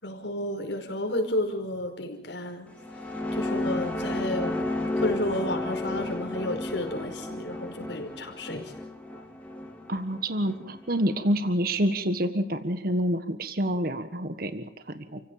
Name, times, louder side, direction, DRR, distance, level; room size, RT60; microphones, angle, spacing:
voice 1, 0.0-2.7 3.3-4.6 5.0-8.7, left 1 dB, 90° left, 4 dB, 5.3 m, -31 dB
sound 1, 2.7-11.3, left 2 dB, 10° left, 3.2 m, -33 dB
voice 2, 9.9-15.2, equal, 55° right, 10 dB, 1.6 m, -27 dB
29.5 x 16.5 x 7.5 m, 0.77 s
head